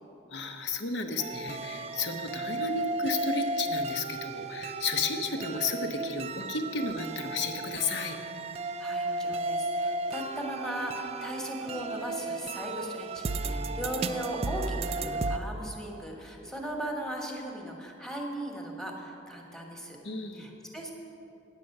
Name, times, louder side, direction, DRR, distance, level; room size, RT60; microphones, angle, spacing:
voice 1, 0.3-8.2 20.0-20.5, left 3 dB, 70° left, 6 dB, 0.9 m, -33 dB
sound 1, 1.2-15.4, right 2 dB, 35° right, 0.3 m, -34 dB
voice 2, 8.8-20.0 20.3-20.9, right 1 dB, 5° left, 0 dB, 1.2 m, -37 dB
9.3 x 8.3 x 6.5 m, 2.8 s
head